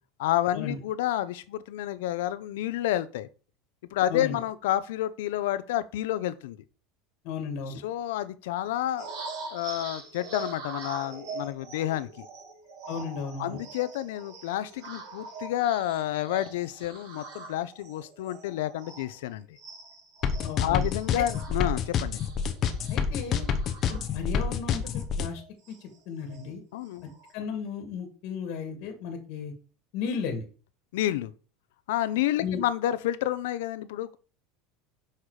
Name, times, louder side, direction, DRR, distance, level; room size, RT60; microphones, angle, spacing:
voice 1, 0.2-3.3 3.9-6.6 7.8-9.1 9.5-12.3 13.4-19.5 20.6-22.2 26.7-27.0 30.9-31.3 31.9-34.2, left 13 dB, 85° left, 0.7 m, -29 dB
voice 2, 4.1-4.4 7.2-7.8 12.9-13.6 20.4-21.2 22.9-23.5 23.9-25.4 25.7-26.6 27.0-29.5 29.9-30.4 32.4-32.6, left 6 dB, 50° left, 1.8 m, -35 dB
sound 1, 9.0-19.3 19.6-24.4 24.8-25.0 25.3-26.5 26.8-27.3, right 4 dB, 70° right, 4.1 m, -43 dB
sound 2, 20.2-25.3, left 7 dB, 30° left, 0.9 m, -27 dB
6.6 x 5.8 x 4.8 m
cardioid pair, 170°, 0 cm